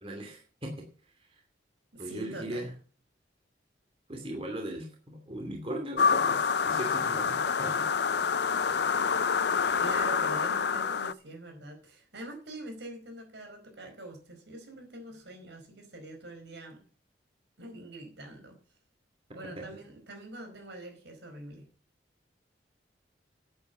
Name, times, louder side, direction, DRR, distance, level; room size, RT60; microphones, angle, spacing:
voice 1, 0.0-0.8 2.0-2.7 4.1-7.9 19.4-19.7, right 1 dB, 30° right, 2 dB, 2.6 m, -38 dB
voice 2, 1.9-2.7 9.8-16.9 17.6-18.6 19.3-21.7, right 1 dB, 75° right, 4 dB, 4.8 m, -44 dB
sound 1, 6.0-11.1, left 6 dB, 65° left, 0.6 m, -27 dB
11.0 x 8.8 x 6.8 m, 0.42 s
head